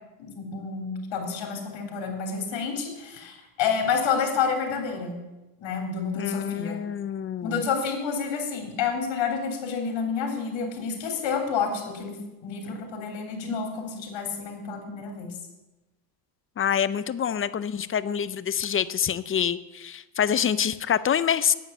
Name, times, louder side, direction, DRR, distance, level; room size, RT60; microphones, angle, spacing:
voice 1, 0.2-5.2 5.6-6.8 7.4-15.4, left 6 dB, 65° left, 2 dB, 3.5 m, -29 dB
voice 2, 6.2-7.6 16.6-21.5, left 8 dB, 30° left, 15 dB, 0.5 m, -26 dB
9.2 x 8.4 x 7.9 m, 1.0 s
cardioid pair, 100°, 48 cm